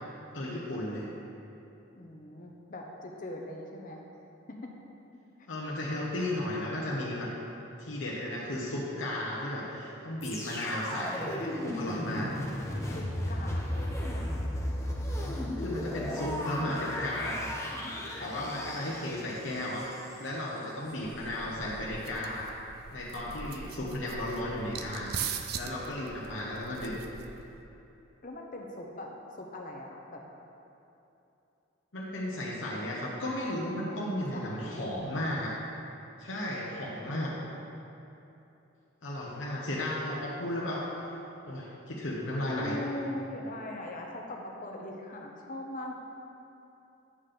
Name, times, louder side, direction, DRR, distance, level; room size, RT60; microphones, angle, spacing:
voice 1, 0.3-1.1 5.5-7.3 7.8-12.3 15.6-17.5 18.2-22.5 22.9-25.2 25.5-27.0 31.9-35.5 36.2-37.3 39.0-40.9 41.5-42.8, left 1 dB, 75° left, -5 dB, 1.0 m, -34 dB
voice 2, 1.9-4.0 4.5-4.7 12.9-14.1 18.0-19.0 23.6-24.3 28.2-30.2 33.9-34.0 34.3-34.8 42.5-45.9, left 1 dB, 40° left, 0 dB, 0.9 m, -42 dB
sound 1, 10.2-20.3 20.9-21.0, left 1 dB, 15° left, 0.7 m, -35 dB
sound 2, 20.9-27.6, right 6 dB, 50° right, 0.4 m, -41 dB
8.4 x 3.8 x 6.7 m, 2.9 s
head